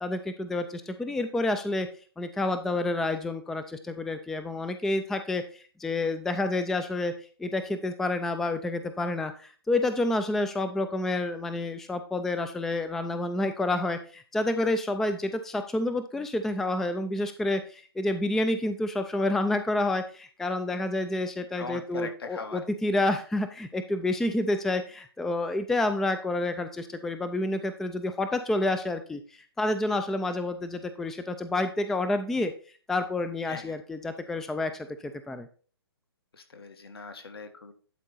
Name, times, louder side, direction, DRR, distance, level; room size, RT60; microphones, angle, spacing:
voice 1, 0.0-1.9 2.2-7.1 7.4-32.5 32.9-35.5, left 2 dB, 5° left, 9 dB, 0.4 m, -29 dB
voice 2, 21.6-22.6 33.5-33.8 36.3-37.7, left 4 dB, 70° left, 6 dB, 1.8 m, -40 dB
11.5 x 4.4 x 4.1 m, 0.39 s
figure-of-eight pair, 135°, 13 cm